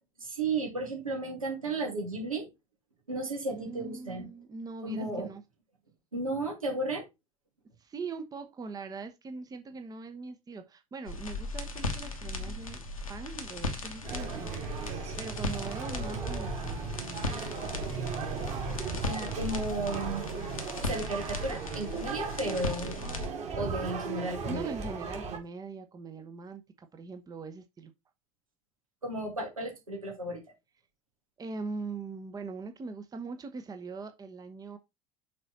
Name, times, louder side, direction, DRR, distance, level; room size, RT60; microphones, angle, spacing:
voice 1, 0.2-2.5 3.1-4.3 4.8-5.3 6.1-7.0 19.0-20.2 20.8-23.1 23.5-24.7 29.0-30.4, right 2 dB, 85° right, 2.5 m, -34 dB
voice 2, 3.5-5.4 7.8-12.8 13.1-17.2 24.4-27.9 31.4-34.8, right 4 dB, 20° right, 0.9 m, -41 dB
sound 1, 11.1-23.3, left 2 dB, 85° left, 1.3 m, -37 dB
sound 2, 14.0-25.4, right 5 dB, 40° right, 2.6 m, -37 dB
6.6 x 4.1 x 4.1 m
figure-of-eight pair, 70°, 17 cm